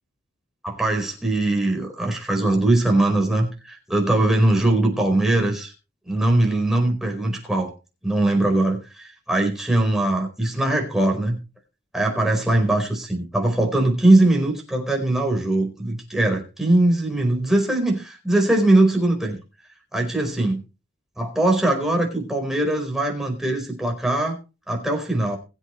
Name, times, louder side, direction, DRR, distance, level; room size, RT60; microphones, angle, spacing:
voice 1, 0.6-5.7 6.1-7.7 8.0-11.4 11.9-19.4 19.9-20.6 21.2-24.4 24.7-25.4, right 1 dB, ahead, 0 dB, 4.5 m, -21 dB
22.5 x 8.3 x 3.2 m, 0.31 s
head